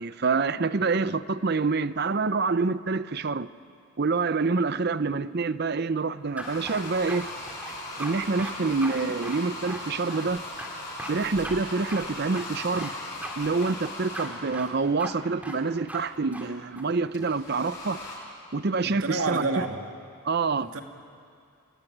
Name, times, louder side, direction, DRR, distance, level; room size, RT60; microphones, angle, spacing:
voice 1, 0.0-3.5 4.0-7.3 8.0-10.4 11.1-12.9 13.4-18.0 18.5-19.6 20.2-20.7, right 4 dB, 45° right, 0.6 m, -27 dB
sound 1, 6.4-14.7 17.1-18.2, left 1 dB, 50° left, 7.9 m, -38 dB
sound 2, 6.4-7.2 7.5-8.1 8.4-8.5 8.8-9.0 9.2-10.3 10.6-10.7 11.0-11.1 11.4-11.5 11.9-12.0 12.3-12.9 13.2-13.3 13.6-14.3 14.5-14.7 15.0-15.1 15.4-15.6 15.9-16.0 16.3-16.4 16.7-17.4, right 1 dB, 5° right, 2.3 m, -39 dB
voice 2, 18.8-19.8 20.6-20.8, right 3 dB, 75° right, 2.2 m, -29 dB
27.0 x 18.0 x 10.0 m
head